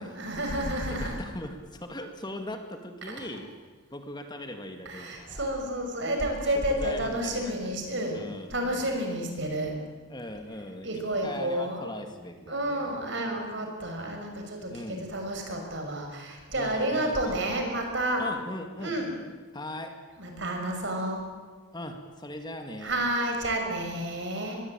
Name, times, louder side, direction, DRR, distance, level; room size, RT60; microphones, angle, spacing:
voice 1, 0.0-1.2 3.2-3.3 4.8-9.8 10.8-11.9 12.5-18.2 18.8-19.1 20.2-21.2 22.8-24.6, right 1 dB, 55° right, 3 dB, 6.3 m, -30 dB
voice 2, 0.9-3.5 3.9-5.5 6.6-7.7 8.1-8.9 10.1-12.9 14.7-15.1 16.6-17.5 18.2-19.0 19.5-20.0 21.7-23.1, left 1 dB, 20° left, 5 dB, 1.9 m, -40 dB
25.5 x 21.5 x 9.0 m, 1.4 s
head